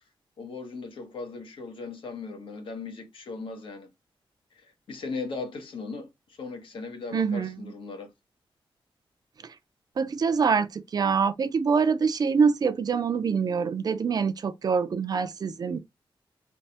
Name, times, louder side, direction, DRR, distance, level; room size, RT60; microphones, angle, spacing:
voice 1, 0.4-3.9 4.5-8.1, left 4 dB, 70° left, 1.0 m, -38 dB
voice 2, 7.1-7.7 9.4-9.5 10.0-15.8, right 5 dB, 45° right, 0.4 m, -25 dB
3.3 x 2.1 x 2.7 m
wide cardioid pair, 140°, 9 cm